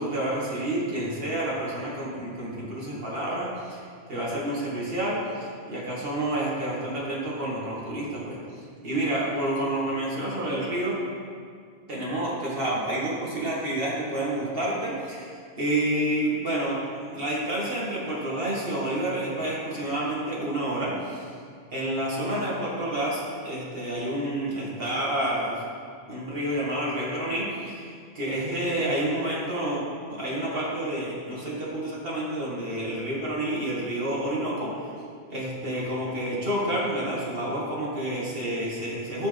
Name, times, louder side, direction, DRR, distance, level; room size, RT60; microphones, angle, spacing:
voice 1, 0.0-8.4 8.8-11.0 11.9-16.8 17.1-21.3 21.7-25.6 26.1-29.8 30.1-34.9 35.3-39.3, right 1 dB, 60° right, -6 dB, 2.3 m, -29 dB
12.5 x 6.1 x 3.5 m, 2.1 s
omnidirectional pair, 1.1 m